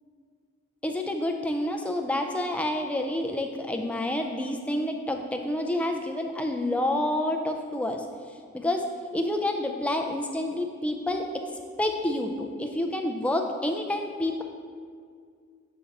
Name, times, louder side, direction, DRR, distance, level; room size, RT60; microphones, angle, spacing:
voice 1, 0.8-8.0 8.5-8.9 9.1-11.4 11.8-14.4, left 1 dB, 5° left, 3 dB, 0.3 m, -28 dB
7.6 x 3.9 x 4.0 m, 2.1 s
head